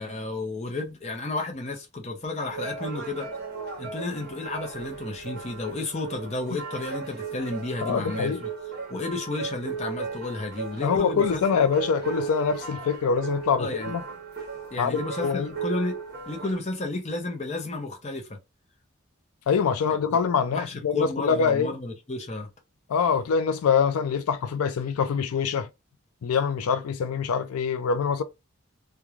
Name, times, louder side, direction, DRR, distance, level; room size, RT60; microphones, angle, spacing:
voice 1, 0.0-3.3 3.8-8.5 8.9-11.7 13.6-13.9 14.7-16.0 16.3-18.4 20.5-22.5, left 2 dB, 30° left, 0.6 m, -32 dB
sound 1, 2.5-16.6, right 5 dB, 45° right, 0.9 m, -36 dB
voice 2, 7.8-8.4 10.8-14.0 14.8-15.5 19.5-21.7 22.9-25.7 26.2-28.2, left 6 dB, 90° left, 0.4 m, -24 dB
3.0 x 2.2 x 2.4 m
head